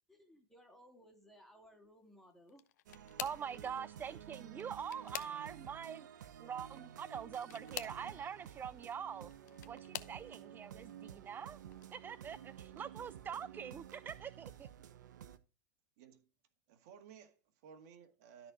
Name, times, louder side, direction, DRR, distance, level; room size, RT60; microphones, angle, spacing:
voice 1, 0.1-2.6, equal, ahead, 2.8 m, -61 dB
sound 1, 2.5-3.5 4.5-5.7 7.3-8.0 9.1-10.2 10.9-11.3 11.7-11.9 13.2-13.3, left 12 dB, 75° left, 0.8 m, -47 dB
sound 2, 2.9-15.4, right 9 dB, 80° right, 1.0 m, -52 dB
voice 2, 3.2-6.1 6.4-9.3 9.7-11.6 11.9-14.7, right 7 dB, 20° right, 0.3 m, -44 dB
voice 3, 7.1-8.2 16.0-16.2 16.7-18.5, right 7 dB, 60° right, 2.0 m, -58 dB
13.0 x 4.4 x 4.9 m
hypercardioid pair, 105°, 10 cm